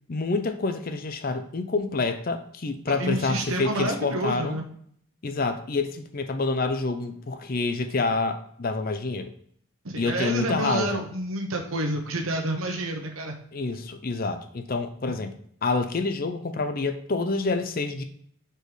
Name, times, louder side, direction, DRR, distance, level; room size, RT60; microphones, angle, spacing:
voice 1, 0.1-4.6 5.2-9.3 10.0-11.0 13.5-15.3 15.6-18.0, left 3 dB, 45° left, 8 dB, 0.5 m, -27 dB
voice 2, 2.9-4.6 9.8-13.3, right 1 dB, 80° right, 2 dB, 1.0 m, -29 dB
4.8 x 4.5 x 4.9 m, 0.64 s
head